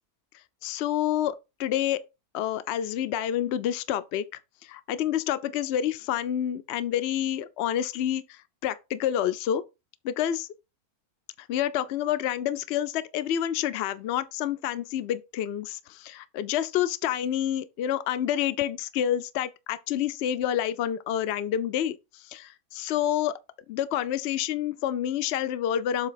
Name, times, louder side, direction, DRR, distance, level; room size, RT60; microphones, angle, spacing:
voice 1, 0.6-2.0 2.3-4.2 4.7-9.6 10.0-10.5 11.5-22.0 22.3-23.4 23.7-26.1, left 10 dB, 60° left, 0.7 m, -28 dB
7.5 x 3.2 x 5.7 m
omnidirectional pair, 1.6 m